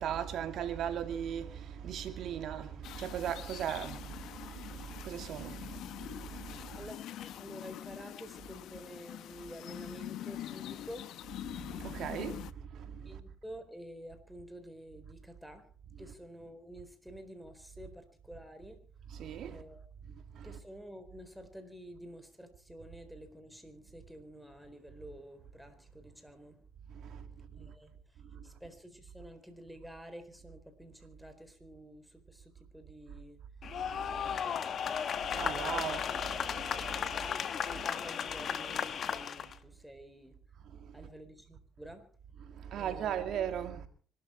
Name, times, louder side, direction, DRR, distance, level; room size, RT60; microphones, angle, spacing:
voice 1, 0.0-6.8 11.5-13.2 19.1-19.6 20.1-20.5 26.9-27.7 28.2-28.5 33.8-34.4 35.3-37.3 40.6-41.0 42.4-43.9, right 9 dB, 65° right, 2.5 m, -39 dB
sound 1, 2.8-12.5, left 12 dB, 70° left, 0.9 m, -44 dB
voice 2, 6.8-11.1 13.1-15.7 16.0-18.8 19.5-20.1 20.4-26.7 27.6-33.4 34.2-35.1 35.8-35.9 37.3-40.4 40.9-42.1 42.8-43.3, equal, ahead, 4.1 m, -50 dB
sound 2, 33.6-39.5, left 8 dB, 50° left, 1.3 m, -35 dB
25.0 x 12.5 x 4.4 m
supercardioid pair, 80°, 0 cm